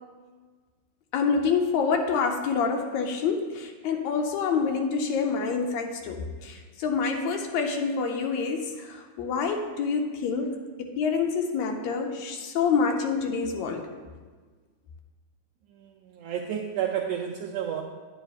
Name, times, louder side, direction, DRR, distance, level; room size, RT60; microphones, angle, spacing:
voice 1, 1.1-13.9, left 5 dB, 75° left, 3 dB, 1.8 m, -27 dB
voice 2, 15.7-17.8, right 9 dB, 85° right, 0 dB, 1.4 m, -31 dB
10.0 x 9.1 x 2.4 m, 1.4 s
omnidirectional pair, 3.4 m